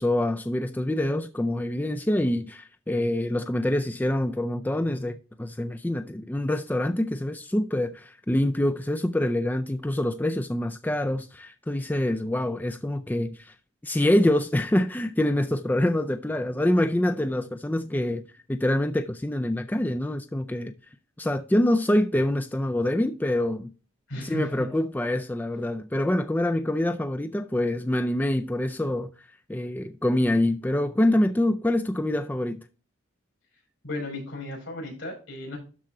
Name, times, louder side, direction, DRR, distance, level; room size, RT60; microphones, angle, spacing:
voice 1, 0.0-13.5 13.8-20.7 21.2-23.7 24.2-29.1 29.5-32.6, left 1 dB, 10° left, 0.3 m, -25 dB
voice 2, 24.1-24.7 33.8-35.6, left 1 dB, 75° left, 5.4 m, -34 dB
12.5 x 4.3 x 3.8 m
head